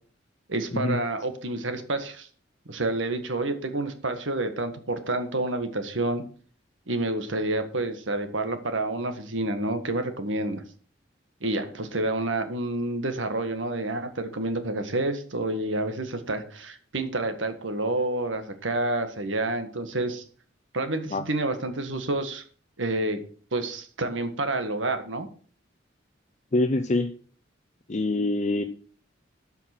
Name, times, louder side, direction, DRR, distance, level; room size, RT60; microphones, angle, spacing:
voice 1, 0.5-2.3 2.6-6.2 6.9-10.6 11.4-20.2 20.7-22.4 22.8-23.2 23.5-25.3, right 2 dB, 85° right, 8 dB, 1.7 m, -29 dB
voice 2, 26.5-27.1 27.9-28.6, left 2 dB, 40° left, 8 dB, 0.6 m, -25 dB
12.5 x 5.8 x 6.0 m, 0.43 s
head